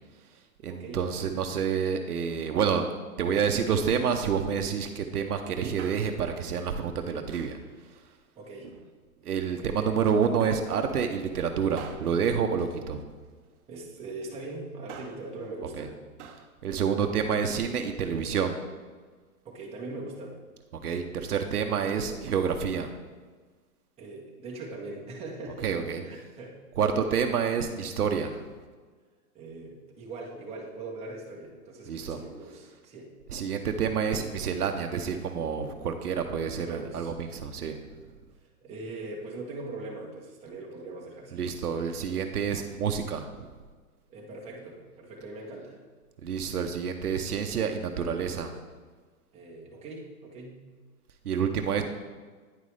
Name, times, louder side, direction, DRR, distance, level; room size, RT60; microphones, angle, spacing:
voice 1, 0.1-2.9 3.2-8.2 9.2-13.1 15.8-15.9 16.6-18.6 20.7-22.9 25.6-26.0 26.8-28.6 31.9-32.2 33.3-38.1 41.3-43.6 46.2-48.5 51.2-51.8, right 7 dB, 90° right, 5 dB, 0.8 m, -28 dB
voice 2, 0.7-1.4 8.4-8.7 9.6-9.9 13.7-16.0 19.4-20.4 24.0-25.7 26.0-26.6 29.3-33.1 36.6-37.1 38.6-41.7 44.1-45.8 49.3-50.6, right 2 dB, 15° right, -3 dB, 1.1 m, -41 dB
Male speech man speaking, 5.8-6.4 7.3-7.7 8.5-9.3 10.4-10.8 11.8-13.4 14.7-15.3 16.2-16.5 16.8-16.9, right 7 dB, 50° right, 0.8 m, -47 dB
9.5 x 5.4 x 3.3 m, 1.4 s
hypercardioid pair, 140°, 44 cm